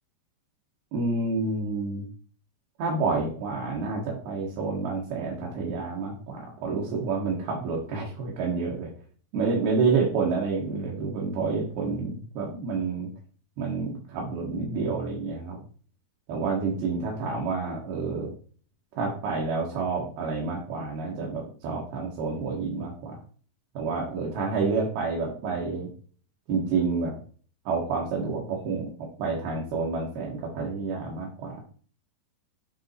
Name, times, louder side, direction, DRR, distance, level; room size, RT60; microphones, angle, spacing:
voice 1, 0.9-2.1 2.8-8.9 9.3-13.1 13.6-15.6 16.3-18.3 19.0-23.2 23.7-25.9 26.5-27.2 27.7-31.6, right 4 dB, 65° right, -3 dB, 3.2 m, -29 dB
9.6 x 3.7 x 4.4 m, 0.42 s
omnidirectional pair, 5.2 m